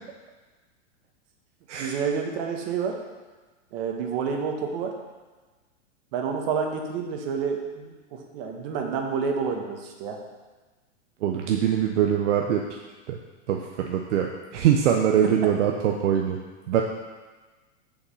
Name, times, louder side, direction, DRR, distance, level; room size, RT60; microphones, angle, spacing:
voice 1, 1.8-3.0 3.7-4.9 6.1-10.2, right 6 dB, 50° right, 2 dB, 1.5 m, -29 dB
voice 2, 11.2-12.6 13.1-13.2 13.5-16.4 16.7-16.8, right 9 dB, 70° right, 2 dB, 0.9 m, -23 dB
7.2 x 5.8 x 5.6 m, 1.3 s
hypercardioid pair, 145°, 37 cm